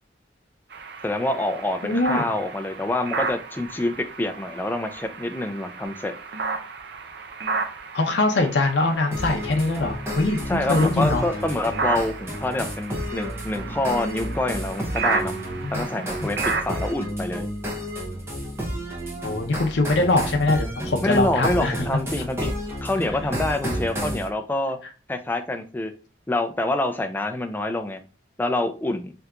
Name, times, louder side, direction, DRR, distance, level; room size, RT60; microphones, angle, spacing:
sound 1, 0.7-16.9, right 4 dB, 60° right, 0.5 m, -33 dB
voice 1, 1.0-6.1 10.5-15.3 15.7-17.5 21.0-22.5 22.8-24.8 25.1-25.9 26.3-28.0 28.4-29.1, left 1 dB, 10° left, 6 dB, 0.3 m, -26 dB
voice 2, 1.8-2.3 7.9-11.2 15.6-15.8 16.2-16.3 19.2-22.3, left 2 dB, 75° left, 2 dB, 0.6 m, -23 dB
sound 2, 9.1-24.3, equal, 15° right, 0.6 m, -31 dB
3.5 x 2.8 x 2.3 m, 0.36 s
head